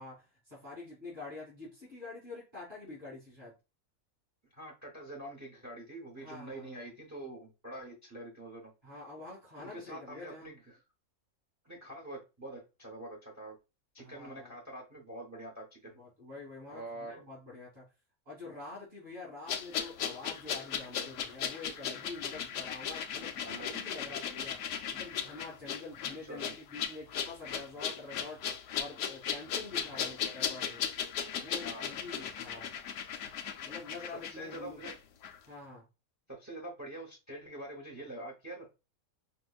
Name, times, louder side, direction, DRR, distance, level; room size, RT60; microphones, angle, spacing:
voice 1, 0.0-3.5 6.2-6.9 8.8-10.5 14.0-14.5 15.9-17.8 18.3-30.8 31.3-32.7 33.6-34.8 35.5-35.8, left 3 dB, 35° right, -7 dB, 2.4 m, -46 dB
voice 2, 4.5-8.7 9.6-10.8 11.6-13.6 13.9-16.0 16.7-17.2 23.4-23.8 26.2-26.5 29.8-30.0 31.6-31.9 34.3-34.9 36.3-38.7, right 1 dB, 20° right, 0 dB, 0.5 m, -45 dB
sound 1, 19.5-35.0 35.2-35.4, left 8 dB, 65° left, 0.8 m, -37 dB
5.5 x 2.2 x 2.3 m, 0.28 s
omnidirectional pair, 1.5 m